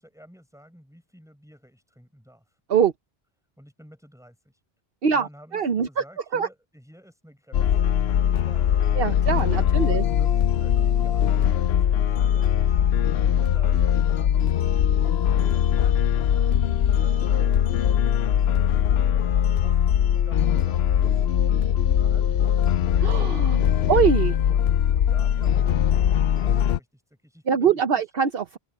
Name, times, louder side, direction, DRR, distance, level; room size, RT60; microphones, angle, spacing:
voice 1, 0.0-2.6 3.6-4.6 5.1-21.2 21.9-23.9 24.5-28.1, equal, 5° right, 8.0 m, -51 dB
voice 2, 5.0-6.0 6.3-6.5 9.0-10.0 23.0-23.6 23.9-24.4 27.5-28.6, right 7 dB, 65° right, 1.1 m, -23 dB
sound 1, 7.5-26.8, left 9 dB, 80° left, 0.9 m, -21 dB
open air
omnidirectional pair, 1.0 m